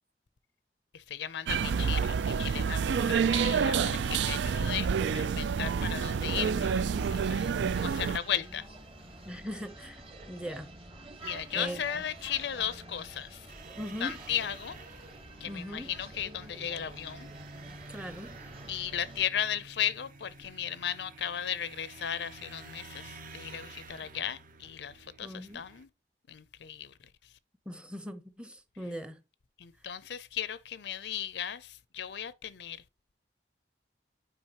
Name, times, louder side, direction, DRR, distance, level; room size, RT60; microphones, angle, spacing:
voice 1, 0.9-2.8 3.1-8.7 11.2-13.5 14.0-14.8 15.4-17.3 18.7-25.9 26.3-26.9 29.6-32.8, left 9 dB, 70° left, 0.5 m, -36 dB
sound 1, 1.5-8.2, right 6 dB, 90° right, 0.4 m, -28 dB
sound 2, 4.5-19.2, right 2 dB, 30° right, 1.3 m, -48 dB
voice 2, 9.2-10.7 11.5-11.8 13.8-14.2 15.5-15.9 17.9-18.3 25.2-25.7 27.7-29.2, equal, 5° right, 0.7 m, -40 dB
sound 3, 13.5-25.9, right 3 dB, 50° right, 0.8 m, -50 dB
8.8 x 4.9 x 2.9 m
head